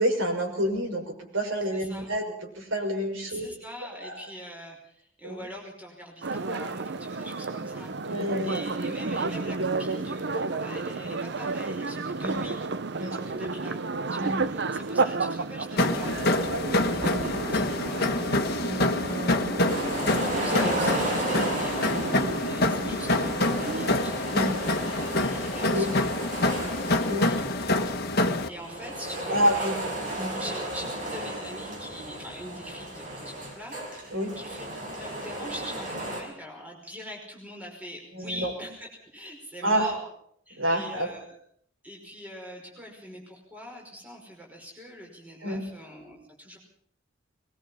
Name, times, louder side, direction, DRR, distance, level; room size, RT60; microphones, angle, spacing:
voice 1, 0.0-3.5 3.9-4.2 5.2-5.5 8.0-8.6 12.2-12.4 13.0-13.4 14.2-14.4 18.7-19.7 24.3-24.5 25.7-25.9 27.1-27.3 29.3-30.4 34.1-34.3 38.1-38.5 39.6-39.9 40.5-41.1 45.4-45.6, equal, 90° right, 2 dB, 6.1 m, -29 dB
voice 2, 1.7-2.1 3.2-12.6 13.0-13.8 14.1-18.3 20.3-29.9 30.3-34.6 35.0-40.1 40.5-41.4 41.8-46.6, equal, 10° right, 0 dB, 5.5 m, -43 dB
sound 1, 6.2-24.0, right 3 dB, 60° right, 0.8 m, -32 dB
sound 2, 15.8-28.5, left 2 dB, 50° left, 1.5 m, -26 dB
sound 3, 19.6-22.5 23.1-27.9 28.5-36.2, right 1 dB, 40° right, 6.2 m, -34 dB
22.0 x 21.5 x 5.7 m, 0.66 s
head